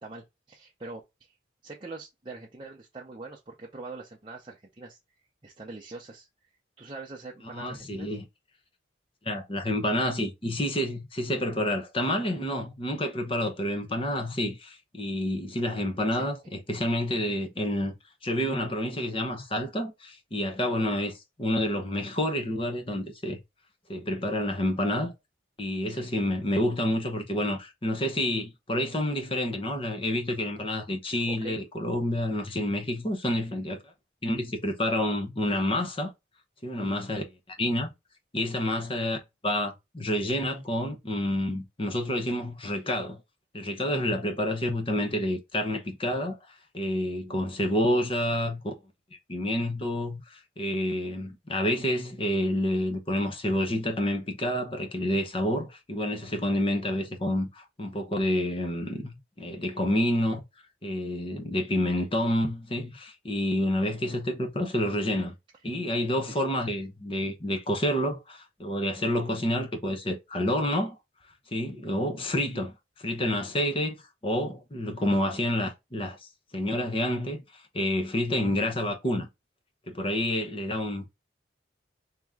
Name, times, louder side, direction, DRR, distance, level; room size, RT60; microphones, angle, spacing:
voice 1, 0.0-1.3 1.6-5.0 5.4-6.3 6.8-8.1 16.1-16.3 25.9-26.1 31.0-31.6 66.3-66.5, right 3 dB, 25° right, 0.7 m, -43 dB
voice 2, 7.5-8.2 9.2-17.9 18.2-23.4 23.9-25.1 25.6-33.8 34.2-36.1 36.6-37.9 38.3-43.2 43.5-46.4 46.7-48.7 49.3-60.4 60.8-65.3 65.6-71.0 71.5-74.0 74.2-79.3 79.9-81.1, left 1 dB, 30° left, 0.9 m, -29 dB
3.7 x 3.0 x 3.5 m
head